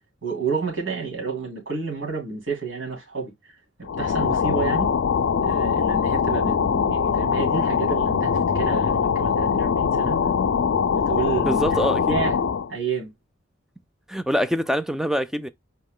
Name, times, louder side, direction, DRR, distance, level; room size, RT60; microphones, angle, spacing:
voice 1, 0.2-3.3 3.8-4.9 5.4-10.2 10.9-11.6 12.0-12.4 12.7-13.1, right 5 dB, 85° right, 2.9 m, -30 dB
sound 1, 3.9-12.7, left 6 dB, 70° left, 0.4 m, -22 dB
voice 2, 11.3-12.2 14.1-15.5, equal, ahead, 0.4 m, -24 dB
4.5 x 3.0 x 3.6 m
head